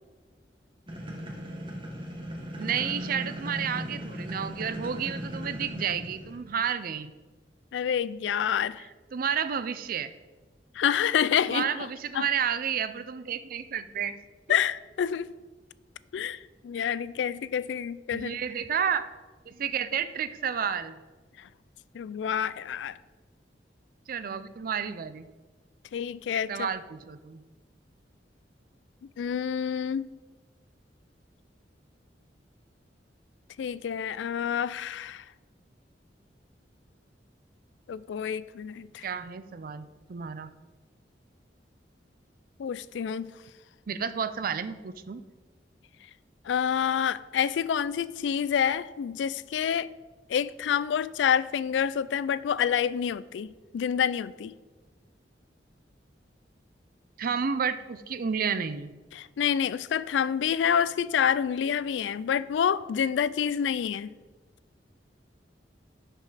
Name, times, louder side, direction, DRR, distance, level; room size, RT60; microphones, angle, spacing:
sound 1, 0.9-6.5, equal, 30° right, 1.5 m, -37 dB
voice 1, 2.6-7.1 9.1-10.1 11.5-14.1 18.1-19.1 19.5-21.0 24.1-25.3 26.5-27.4 39.0-40.5 43.9-45.2 57.2-58.9, right 7 dB, 55° right, 0.5 m, -31 dB
voice 2, 7.7-8.9 10.7-11.7 12.1-12.3 14.5-15.3 16.1-18.4 21.4-21.5 21.9-23.0 25.9-26.7 29.2-30.1 33.6-35.3 37.9-39.1 42.6-43.3 46.4-49.9 50.3-54.5 59.1-64.1, left 8 dB, 80° left, 0.3 m, -28 dB
11.0 x 5.3 x 4.0 m
head